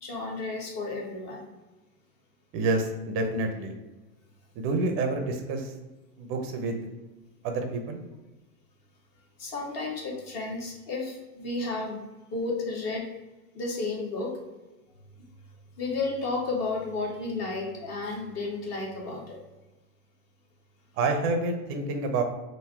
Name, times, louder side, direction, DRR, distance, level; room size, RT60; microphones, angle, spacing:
voice 1, 0.0-1.5 9.4-12.0 12.3-13.1 13.5-14.4 15.8-19.4, left 3 dB, 35° left, -1 dB, 1.2 m, -32 dB
voice 2, 2.5-3.7 4.6-5.7 6.2-6.8 7.4-8.0 21.0-22.2, right 3 dB, 30° right, 5 dB, 0.6 m, -28 dB
3.7 x 2.7 x 4.3 m, 1.1 s
hypercardioid pair, 125°, 46 cm